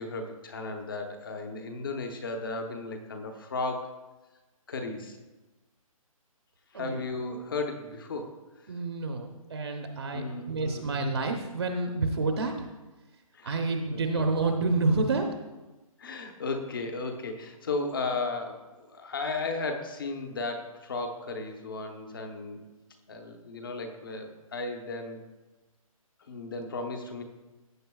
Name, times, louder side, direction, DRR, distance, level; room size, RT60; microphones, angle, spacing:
voice 1, 0.0-3.9 4.7-5.2 6.7-8.7 10.1-10.9 13.3-13.7 13.9-14.0 16.0-22.6 23.1-25.2 26.3-27.2, left 3 dB, 35° left, 5 dB, 1.0 m, -35 dB
voice 2, 8.7-12.5 13.4-15.3, right 3 dB, 45° right, 4 dB, 0.8 m, -28 dB
14.5 x 7.9 x 2.3 m, 1.1 s
hypercardioid pair, 175°, 18 cm